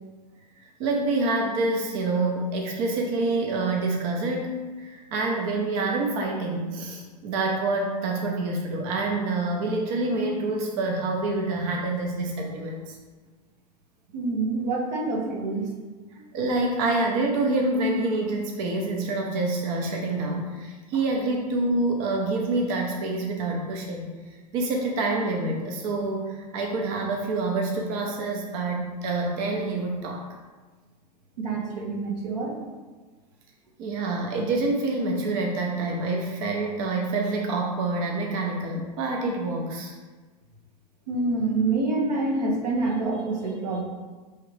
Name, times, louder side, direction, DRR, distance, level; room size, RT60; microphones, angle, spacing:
voice 1, 0.8-12.9 16.3-24.1 24.5-30.2 33.8-39.9, right 2 dB, 60° right, 0 dB, 0.8 m, -27 dB
voice 2, 14.1-15.7 16.2-16.3 31.4-32.6 41.1-43.8, right 3 dB, 85° right, -1 dB, 1.0 m, -27 dB
4.7 x 3.3 x 3.2 m, 1.3 s
hypercardioid pair, 110°, 21 cm